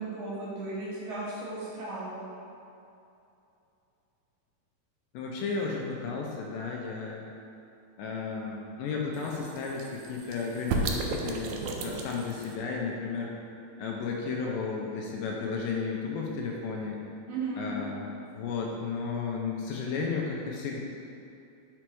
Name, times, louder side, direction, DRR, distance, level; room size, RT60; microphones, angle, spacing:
voice 1, 0.0-2.4 17.3-17.6, right 3 dB, 60° right, -7 dB, 2.7 m, -36 dB
voice 2, 5.1-7.3 8.0-13.3 13.8-17.0 17.6-20.8, left 4 dB, 80° left, -1 dB, 2.1 m, -33 dB
sound 1, 9.1-12.6, right 3 dB, 80° right, 2.2 m, -34 dB
6.1 x 4.5 x 4.6 m, 2.7 s
omnidirectional pair, 4.5 m